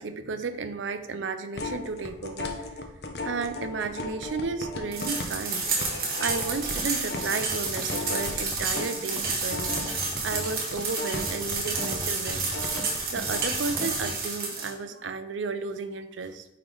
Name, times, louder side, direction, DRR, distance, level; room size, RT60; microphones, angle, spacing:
voice 1, 0.0-2.6 3.2-5.7 6.2-9.7 10.2-12.5 13.1-16.5, right 4 dB, 90° right, 10 dB, 0.5 m, -33 dB
sound 1, 1.5-9.0 9.3-13.0 13.3-13.4, left 2 dB, 60° left, 0.7 m, -36 dB
sound 2, 4.9-14.7, right 4 dB, 55° right, 1.5 m, -30 dB
sound 3, 6.3-14.2, equal, 5° left, 0.6 m, -39 dB
8.6 x 3.2 x 3.9 m, 0.85 s
head